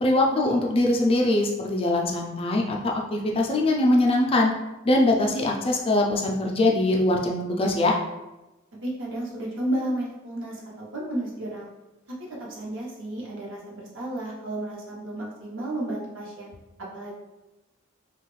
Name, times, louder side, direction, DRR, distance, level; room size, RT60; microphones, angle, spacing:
voice 1, 0.0-2.8 3.1-4.5 4.9-7.9, left 1 dB, 25° left, 0 dB, 0.3 m, -22 dB
voice 2, 8.8-11.7 12.4-16.5 16.9-17.1, right 1 dB, 65° right, -4 dB, 0.9 m, -32 dB
2.9 x 2.3 x 3.1 m, 1.0 s
head